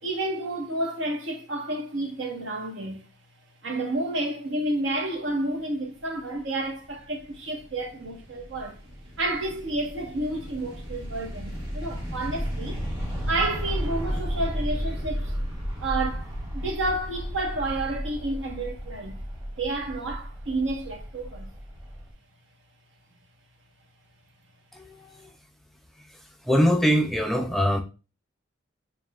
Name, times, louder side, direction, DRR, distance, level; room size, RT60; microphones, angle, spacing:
voice 1, 0.0-3.0 3.6-8.8 9.2-12.8 13.3-15.3 15.8-19.2 19.6-21.5, right 2 dB, 75° right, 1.1 m, -30 dB
sound 1, 6.6-22.1, equal, 25° right, 1.6 m, -34 dB
voice 2, 26.5-27.8, equal, ahead, 0.3 m, -22 dB
7.1 x 2.5 x 2.3 m
head